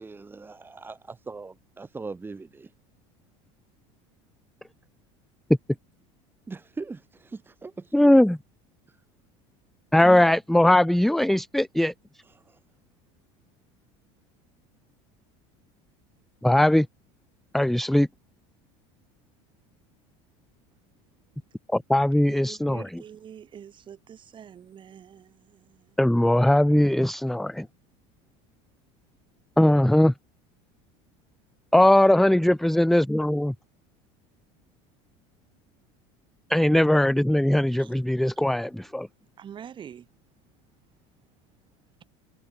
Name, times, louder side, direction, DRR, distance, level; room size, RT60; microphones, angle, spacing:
voice 1, 0.0-2.7 6.5-8.2 10.0-10.2 12.5-12.6, right 4 dB, 15° right, 2.2 m, -40 dB
voice 2, 7.9-8.4 9.9-11.9 16.4-16.9 17.5-18.1 21.7-22.8 26.0-27.7 29.6-30.1 31.7-33.5 36.5-39.1, left 1 dB, ahead, 0.6 m, -20 dB
voice 3, 22.3-26.0 37.8-38.0 39.4-40.1, right 8 dB, 35° right, 7.0 m, -45 dB
supercardioid pair, 125°, 15 cm